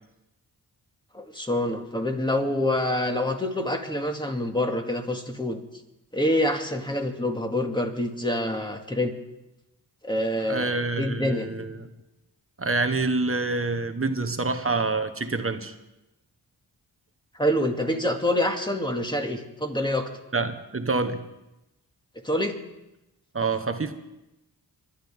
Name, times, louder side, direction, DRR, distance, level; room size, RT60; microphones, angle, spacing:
voice 1, 1.1-5.6 6.1-9.1 10.0-11.5 17.4-20.1 22.2-22.6, left 1 dB, 10° left, 3 dB, 2.3 m, -26 dB
voice 2, 10.5-11.9 12.6-15.7 20.3-21.2 23.3-23.9, right 3 dB, 35° right, 8 dB, 1.4 m, -27 dB
25.5 x 11.5 x 3.8 m, 0.93 s
cardioid pair, 50°, 41 cm